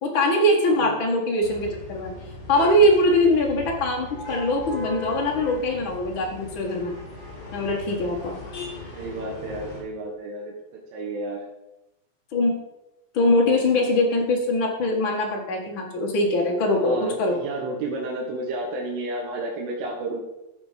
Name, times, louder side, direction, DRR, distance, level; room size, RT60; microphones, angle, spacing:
voice 1, 0.0-2.1 2.5-6.9 7.5-8.3 12.3-12.6 13.1-17.4, left 1 dB, 75° left, -1 dB, 1.1 m, -22 dB
sound 1, 1.4-9.8, left 2 dB, 45° left, 5.4 m, -38 dB
voice 2, 8.9-11.4 16.7-20.2, right 2 dB, 85° right, -1 dB, 4.1 m, -32 dB
13.5 x 7.2 x 5.2 m, 0.91 s
omnidirectional pair, 5.4 m